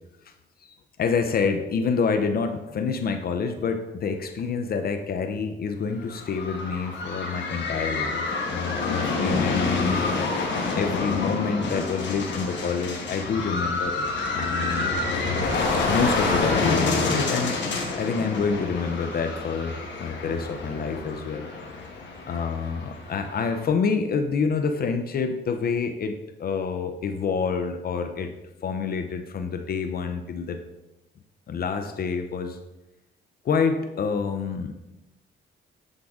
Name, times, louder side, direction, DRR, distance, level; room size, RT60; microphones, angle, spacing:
voice 1, 0.6-10.1 10.7-14.1 14.3-14.9 15.8-21.5 22.2-28.3 28.6-30.6 31.5-32.6 33.4-34.8, left 5 dB, 50° left, 7 dB, 0.5 m, -27 dB
sound 1, 6.0-23.6, left 3 dB, 65° left, 1.2 m, -28 dB
7.8 x 3.7 x 3.5 m, 0.98 s
cardioid pair, 90°, 20 cm